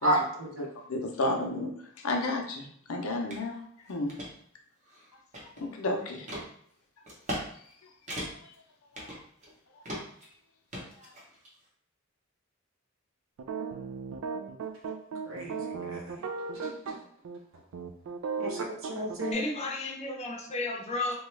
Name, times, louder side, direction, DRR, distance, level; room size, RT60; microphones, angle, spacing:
voice 1, 0.0-0.7 15.2-16.3 16.5-17.0 18.4-19.5, right 1 dB, 65° right, 0 dB, 0.7 m, -32 dB
voice 2, 0.6-1.7 2.0-3.6 3.9-4.1 5.6-6.3 8.2-8.3 8.9-9.1, left 2 dB, 80° left, 2 dB, 0.6 m, -32 dB
sound 1, 3.3-3.4 3.9-4.3 4.8-5.8 6.3-6.5 7.1-7.4 7.7-7.8 8.1-8.5 8.9-9.5 9.8-10.2 10.7-11.5, equal, 35° right, 0.9 m, -38 dB
sound 2, 13.4-17.0 17.2-17.4 17.7-19.3, right 5 dB, 90° right, 0.3 m, -36 dB
voice 3, 19.3-21.2, left 2 dB, 30° left, -1 dB, 0.6 m, -33 dB
2.9 x 2.3 x 3.2 m, 0.65 s
head